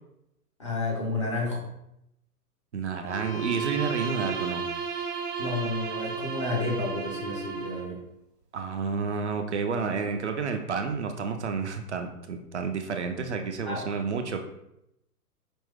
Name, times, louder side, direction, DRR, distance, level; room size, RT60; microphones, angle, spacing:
voice 1, 0.6-1.7 5.4-8.0 13.7-14.0, left 2 dB, 20° left, -4 dB, 0.4 m, -31 dB
voice 2, 2.7-4.7 8.5-14.4, right 5 dB, 50° right, 5 dB, 0.6 m, -30 dB
Bowed string instrument, 3.0-8.0, right 6 dB, 75° right, 0.9 m, -33 dB
5.3 x 2.8 x 3.4 m, 0.82 s
figure-of-eight pair, 120°, 47 cm